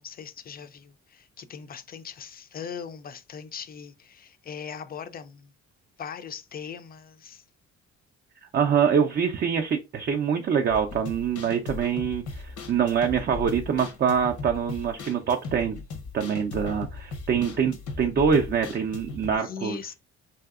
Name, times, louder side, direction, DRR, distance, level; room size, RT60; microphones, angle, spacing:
voice 1, 0.0-5.5 6.0-7.4 19.3-19.9, left 7 dB, 30° left, 0.4 m, -40 dB
voice 2, 8.5-15.8 16.1-19.8, right 7 dB, 35° right, 0.4 m, -25 dB
sound 1, 10.7-19.4, left 4 dB, 75° left, 0.8 m, -38 dB
3.2 x 2.7 x 2.3 m
cardioid pair, 90°, 30 cm